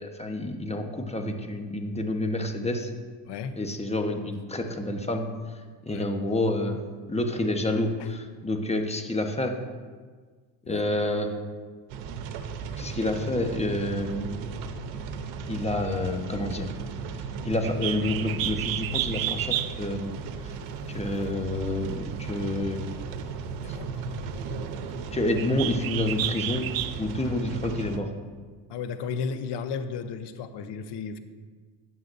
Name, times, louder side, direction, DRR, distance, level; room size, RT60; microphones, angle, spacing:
voice 1, 0.0-2.9 3.6-6.8 7.1-9.5 10.7-11.3 12.8-14.3 15.5-16.7 17.4-20.2 20.4-20.5 20.9-22.9 23.7-23.8 25.1-26.7 27.0-28.1, left 1 dB, 15° left, 4 dB, 1.2 m, -29 dB
voice 2, 3.2-3.6 5.9-6.1 8.0-8.1 10.6-10.8 23.6-24.4 25.0-25.1 27.2-27.7 28.7-31.2, left 6 dB, 65° left, 10 dB, 0.9 m, -35 dB
sound 1, 11.9-28.0, right 5 dB, 90° right, 0.9 m, -36 dB
Bird, 17.6-27.2, right 13 dB, 55° right, 0.5 m, -34 dB
15.0 x 9.2 x 2.7 m, 1.5 s
cardioid pair, 95°, 44 cm